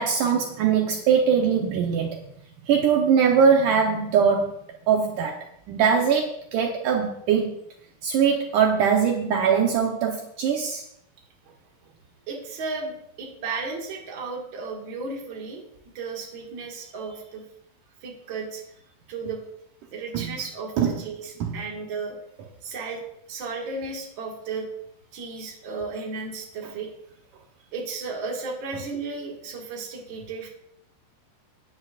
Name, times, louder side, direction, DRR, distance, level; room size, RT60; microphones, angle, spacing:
voice 1, 0.0-2.2 2.7-4.5 4.9-5.4 5.7-7.5 8.0-10.8 20.1-20.3 20.8-21.0 21.4-21.6, right 7 dB, 90° right, 1 dB, 1.8 m, -21 dB
voice 2, 12.3-15.6 15.9-17.4 18.0-18.6 19.1-19.4 19.9-22.2 22.6-23.0 23.3-24.7 25.1-26.9 27.7-30.5, right 4 dB, 45° right, -1 dB, 1.6 m, -34 dB
15.5 x 9.8 x 2.5 m, 0.75 s
omnidirectional pair, 5.1 m